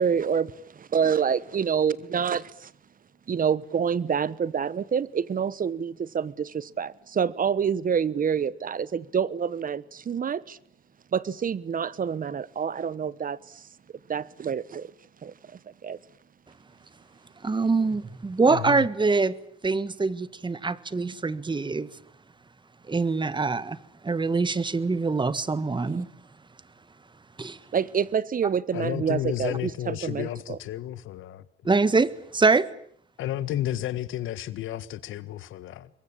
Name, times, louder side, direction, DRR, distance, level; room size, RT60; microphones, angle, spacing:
voice 1, 0.0-2.7 3.3-10.6 11.1-13.6 14.1-14.9 15.2-15.3 15.8-16.0 21.0-21.1 25.9-26.0 27.7-30.6, right 7 dB, 45° right, 1.2 m, -27 dB
voice 2, 17.4-19.3 19.6-21.9 22.9-23.8 24.0-26.1 27.4-27.6 31.6-32.7, right 4 dB, 25° right, 1.5 m, -24 dB
voice 3, 18.5-18.8 28.7-31.4 33.2-35.9, left 12 dB, 80° left, 1.6 m, -32 dB
26.5 x 22.5 x 8.8 m
cardioid pair, 90°, 20 cm